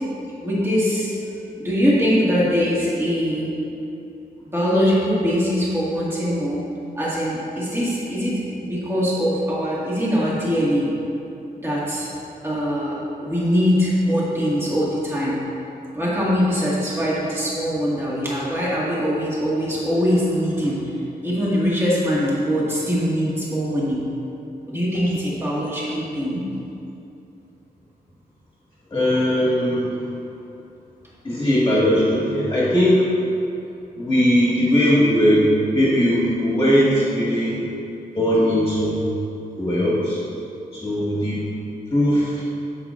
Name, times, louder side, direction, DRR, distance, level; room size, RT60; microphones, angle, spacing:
voice 1, 0.4-1.1 1.6-3.5 4.5-6.6 6.9-8.4 8.7-10.9 11.6-12.1 12.4-15.4 15.9-20.8 21.2-24.0 24.7-26.4, equal, 15° right, -7 dB, 1.7 m, -22 dB
voice 2, 28.9-30.1 31.2-33.1 34.0-37.6 38.1-39.0 39.6-40.2 40.7-41.5 41.9-42.4, equal, 20° left, -8 dB, 1.5 m, -19 dB
9.6 x 7.5 x 2.5 m, 2.8 s
wide cardioid pair, 155°, 16 cm